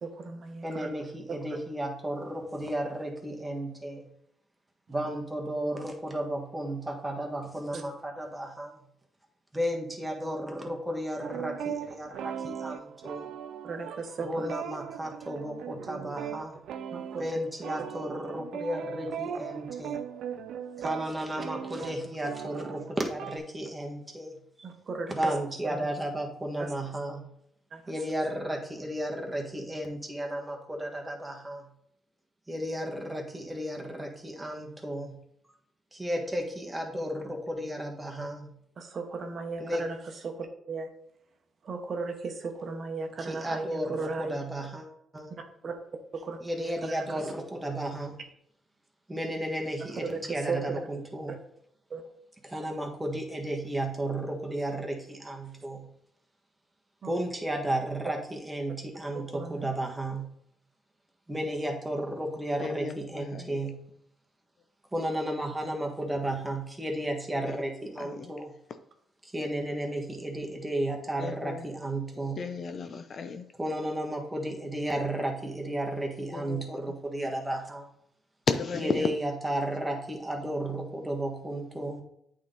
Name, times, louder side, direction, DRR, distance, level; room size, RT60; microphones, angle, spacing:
voice 1, 0.0-0.9 1.3-1.4 7.7-7.8 13.6-14.5 16.9-17.2 24.6-25.1 25.7-25.8 26.6-26.7 27.7-27.9 38.8-40.0 40.2-40.9 41.6-44.4 45.6-45.7 46.1-46.4 46.6-46.9 49.9-50.8 51.9-52.0 57.0-57.1 59.1-59.7, right 4 dB, 50° right, 4 dB, 1.0 m, -36 dB
voice 2, 0.6-4.1 4.9-8.8 9.5-13.3 14.2-16.5 17.2-20.0 20.8-24.7 25.1-27.3 27.9-31.7 32.5-35.2 35.9-38.5 39.6-39.8 43.2-44.9 45.1-45.3 46.4-48.2 49.1-51.4 52.4-55.9 57.0-60.3 61.3-63.8 64.9-68.5 69.2-72.5 73.6-77.9 78.7-82.0, right 1 dB, 10° right, 1 dB, 1.5 m, -33 dB
sound 1, 11.2-23.4, right 8 dB, 80° right, 0.4 m, -38 dB
voice 3, 62.6-63.6 67.5-67.6 68.1-68.3 71.2-71.6 72.4-73.5 76.3-76.6 78.5-79.1, left 5 dB, 50° left, 9 dB, 0.6 m, -33 dB
8.4 x 3.8 x 4.1 m, 0.72 s
cardioid pair, 90°, 0 cm